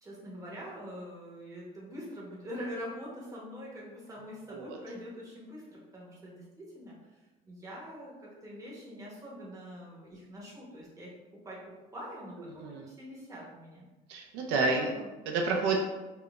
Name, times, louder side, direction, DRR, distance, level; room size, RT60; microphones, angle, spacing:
voice 1, 0.0-7.0 7.5-11.6 11.9-13.9 14.7-15.1, equal, 20° right, -5 dB, 0.9 m, -44 dB
voice 2, 14.1-14.9 15.3-15.8, right 3 dB, 80° right, 1 dB, 0.4 m, -29 dB
3.7 x 2.0 x 2.3 m, 1.1 s
cardioid pair, 125°, 17 cm